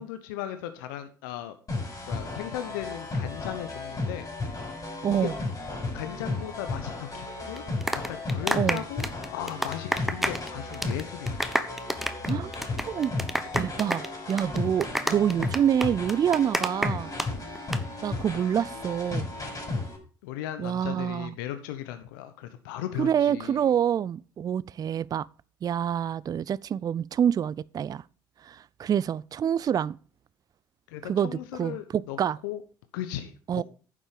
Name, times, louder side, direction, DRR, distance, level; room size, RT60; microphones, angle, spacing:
voice 1, 0.0-1.5 2.1-4.3 5.1-5.3 5.9-7.6 8.1-11.4 18.3-18.4 20.2-23.6 30.9-32.2 32.4-32.6 32.9-33.6, left 12 dB, 75° left, 0.9 m, -37 dB
sound 1, 1.7-20.0, left 2 dB, 30° left, 6.1 m, -34 dB
voice 2, 5.0-5.3 8.5-8.8 12.3-12.5 12.9-13.1 13.5-17.1 18.0-19.3 20.6-21.3 23.0-25.3 25.6-28.0 28.4-30.0 31.0-32.4 33.5-33.6, right 9 dB, 35° right, 0.4 m, -27 dB
sound 2, 7.6-10.5 10.7-11.0 11.3-17.3 17.6-17.8, equal, ahead, 1.1 m, -29 dB
9.8 x 7.4 x 5.0 m
hypercardioid pair, 55°, 11 cm